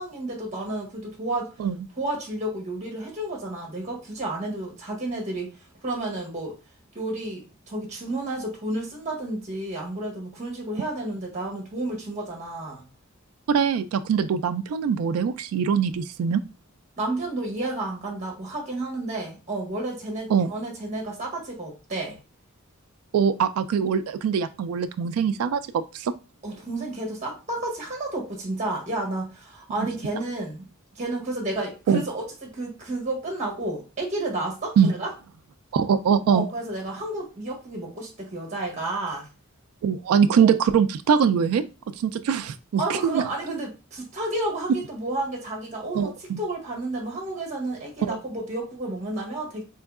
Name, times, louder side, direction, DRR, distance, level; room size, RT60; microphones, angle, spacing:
voice 1, 0.0-1.5 2.0-5.5 5.8-6.5 6.9-12.8 17.0-22.2 26.4-30.7 30.9-35.1 36.3-39.3 40.3-40.5 42.8-46.1 46.4-49.6, right 2 dB, 35° right, 1 dB, 1.2 m, -31 dB
voice 2, 13.5-16.4 20.3-20.5 23.1-26.1 31.9-32.0 34.8-34.9 35.7-36.5 39.8-41.6 42.0-43.2 45.9-46.4 48.0-48.2, right 7 dB, 90° right, 12 dB, 0.3 m, -22 dB
3.5 x 3.0 x 2.3 m, 0.31 s
head